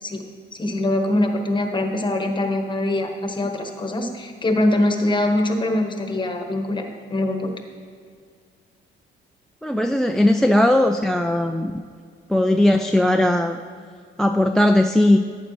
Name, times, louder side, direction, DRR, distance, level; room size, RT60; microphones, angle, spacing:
voice 1, 0.5-7.5, left 1 dB, 25° left, 4 dB, 1.2 m, -23 dB
voice 2, 9.6-11.7 12.3-13.6 14.2-15.2, left 1 dB, ahead, 6 dB, 0.3 m, -18 dB
11.5 x 8.7 x 3.2 m, 2.1 s
cardioid pair, 90°, 20 cm